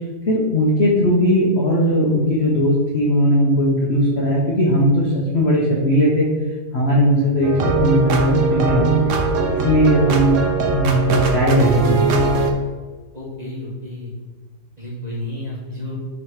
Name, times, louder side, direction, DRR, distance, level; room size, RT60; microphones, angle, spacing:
voice 1, 0.3-6.3 6.7-9.0 9.5-12.0, equal, 45° left, -4 dB, 0.8 m, -18 dB
sound 1, 7.4-12.5, right 3 dB, 85° right, 0.6 m, -20 dB
voice 2, 13.1-14.1 14.8-15.9, left 1 dB, 25° right, -6 dB, 1.2 m, -31 dB
5.9 x 4.1 x 4.8 m, 1.4 s
omnidirectional pair, 2.4 m